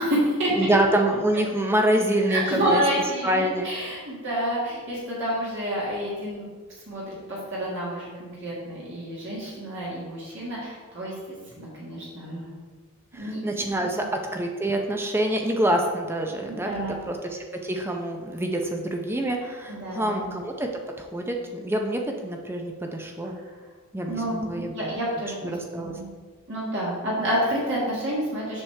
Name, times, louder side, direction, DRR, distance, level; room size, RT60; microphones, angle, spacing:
voice 1, 0.0-0.7 2.3-6.5 6.9-12.5 13.2-13.4 13.9-14.1 16.5-17.1 19.7-20.3 24.1-26.1 26.5-28.6, right 1 dB, 55° right, -6 dB, 1.8 m, -29 dB
voice 2, 0.5-2.8 3.2-3.7 13.1-20.7 21.0-23.4 23.9-25.0 25.4-26.0, right 1 dB, 10° right, 2 dB, 0.5 m, -26 dB
7.3 x 6.2 x 3.3 m, 1.5 s
head